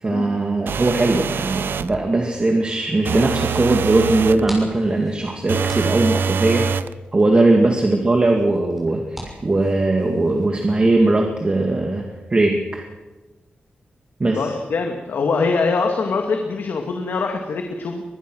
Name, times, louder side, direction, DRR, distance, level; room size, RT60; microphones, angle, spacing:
voice 1, 0.0-6.7 7.1-12.8 14.2-14.5, right 2 dB, 30° right, 2 dB, 2.1 m, -19 dB
sound 1, 0.7-1.9 3.0-4.4 5.5-6.9, right 7 dB, 75° right, 0.7 m, -24 dB
sound 2, 4.1-10.4, equal, 5° right, 6.6 m, -42 dB
voice 2, 14.3-18.0, left 4 dB, 75° left, 3 dB, 2.2 m, -23 dB
23.5 x 20.5 x 6.3 m, 1.2 s
wide cardioid pair, 130°, 4 cm